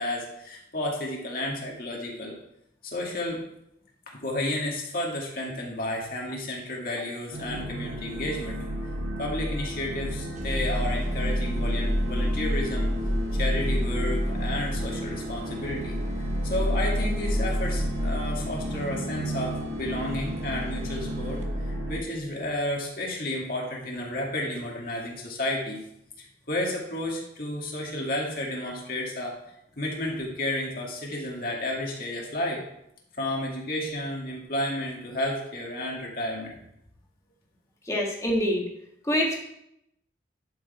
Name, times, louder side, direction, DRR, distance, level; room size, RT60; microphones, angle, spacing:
voice 1, 0.0-2.3 2.8-3.4 4.1-8.6 9.2-12.9 13.3-16.0 16.4-21.4 21.9-25.8 26.2-29.3 29.8-32.6 33.2-36.6, left 1 dB, 50° left, -2 dB, 2.1 m, -32 dB
sound 1, 7.3-22.0, equal, 85° right, 2.7 m, -29 dB
sound 2, 10.4-21.8, left 2 dB, 40° right, 1.1 m, -39 dB
voice 2, 37.9-38.7 39.0-39.3, equal, 15° left, -1 dB, 1.8 m, -25 dB
11.5 x 6.6 x 4.3 m, 0.78 s
head